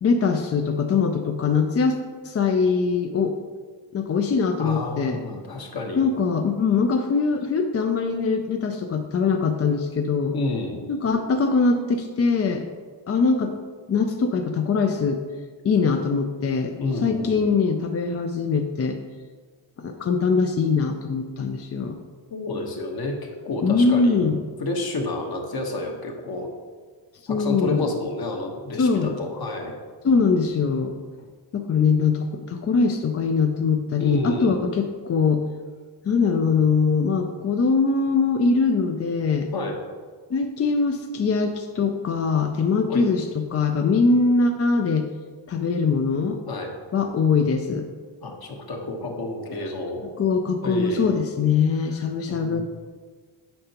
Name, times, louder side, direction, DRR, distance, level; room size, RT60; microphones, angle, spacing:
voice 1, 0.0-2.0 2.2-3.4 3.9-5.2 6.0-10.3 10.9-12.6 13.1-13.5 13.9-15.2 15.6-16.7 17.0-19.0 19.8-22.0 23.6-24.4 27.3-27.9 28.8-29.2 30.0-31.0 31.5-35.5 36.0-39.5 40.3-45.1 45.5-46.4 46.9-47.9 50.0-52.6, left 4 dB, 35° left, 5 dB, 0.4 m, -22 dB
voice 2, 4.6-6.0 10.3-10.8 16.8-17.5 22.3-23.2 23.4-26.5 27.3-29.7 34.0-34.6 39.5-39.8 42.9-43.0 46.5-46.7 48.2-50.0 50.6-51.2 52.3-52.6, left 2 dB, 50° left, 2 dB, 1.2 m, -29 dB
8.5 x 5.7 x 2.9 m, 1.5 s
cardioid pair, 115°, 47 cm